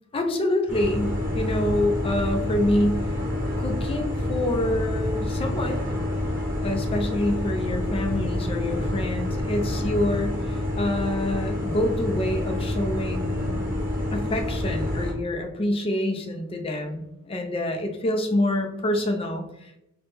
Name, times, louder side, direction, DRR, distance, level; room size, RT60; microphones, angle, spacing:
voice 1, 0.1-3.1 3.6-5.8 6.6-13.6 14.1-19.8, left 1 dB, 25° left, 4 dB, 0.4 m, -27 dB
sound 1, 0.7-15.1, left 1 dB, 10° right, 0.9 m, -28 dB
4.1 x 2.1 x 3.4 m, 0.85 s
head